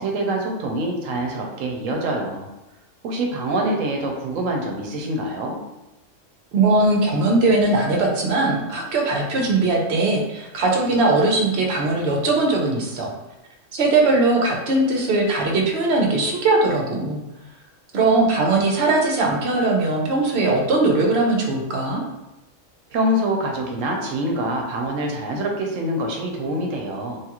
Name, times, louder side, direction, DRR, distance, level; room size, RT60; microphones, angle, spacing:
voice 1, 0.0-2.5 3.0-5.6 22.9-27.2, right 1 dB, 80° right, 1 dB, 1.0 m, -25 dB
voice 2, 6.5-13.1 13.7-17.2 17.9-22.0, right 2 dB, 60° right, 0 dB, 0.8 m, -20 dB
3.1 x 2.3 x 2.9 m, 0.97 s
omnidirectional pair, 1.3 m